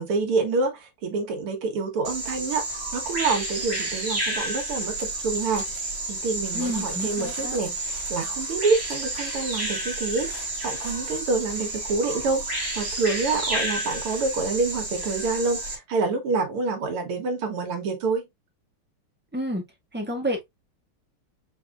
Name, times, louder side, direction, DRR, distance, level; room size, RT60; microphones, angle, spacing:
voice 1, 0.0-5.7 6.1-18.2, right 4 dB, 85° right, 2.3 m, -27 dB
Bird vocalization bird call bird song, 2.0-15.7, right 2 dB, 30° right, 2.0 m, -31 dB
voice 2, 6.5-7.6 19.3-19.6 19.9-20.4, equal, 5° right, 1.1 m, -29 dB
5.6 x 3.7 x 2.3 m
omnidirectional pair, 2.4 m